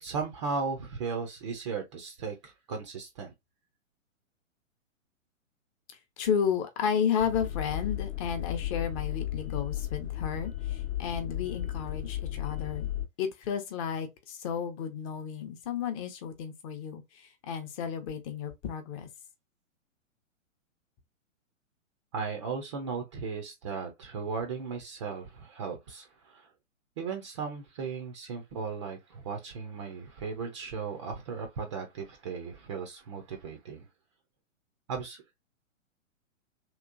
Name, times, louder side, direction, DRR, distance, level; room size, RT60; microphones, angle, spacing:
voice 1, 0.0-3.3 22.1-26.5 27.0-33.8 34.9-35.2, right 5 dB, 25° right, 0.4 m, -36 dB
voice 2, 6.2-12.9 13.2-19.1, left 7 dB, 25° left, 0.6 m, -32 dB
sound 1, 7.2-13.1, left 12 dB, 50° left, 0.9 m, -34 dB
3.0 x 2.9 x 2.4 m
figure-of-eight pair, 120°, 40 cm